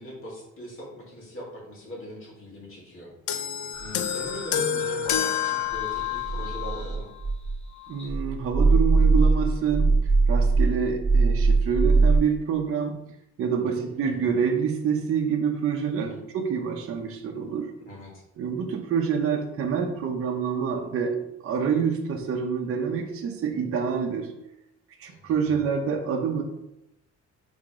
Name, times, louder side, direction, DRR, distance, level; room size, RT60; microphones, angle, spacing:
voice 1, 0.0-3.1 3.8-7.1 13.7-14.2 16.0-16.2 17.8-18.2 25.1-25.3, equal, 45° left, -4 dB, 2.4 m, -41 dB
sound 1, 3.3-6.9 7.8-7.9, left 9 dB, 80° left, 0.6 m, -28 dB
sound 2, 3.7-7.6 8.0-12.2, right 3 dB, 5° left, 1.7 m, -23 dB
voice 2, 7.9-9.9 10.3-13.0 13.4-17.7 18.4-24.3 25.0-26.4, right 6 dB, 50° right, 2 dB, 0.8 m, -27 dB
5.8 x 3.6 x 5.0 m, 0.84 s
cardioid pair, 165°, 30 cm